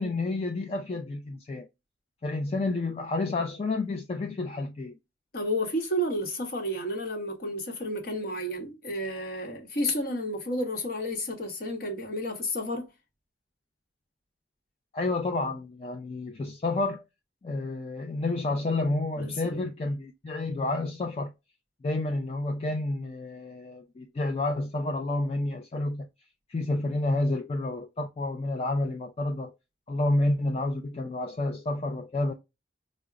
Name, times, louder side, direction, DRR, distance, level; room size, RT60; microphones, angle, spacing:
voice 1, 0.0-1.7 2.2-5.0 14.9-17.0 17.4-21.3 21.8-26.1 26.5-29.6 29.9-32.3, left 2 dB, 35° left, 0.4 m, -30 dB
voice 2, 5.3-12.9 19.2-19.7, equal, 55° left, 1.0 m, -31 dB
4.8 x 2.1 x 2.4 m
head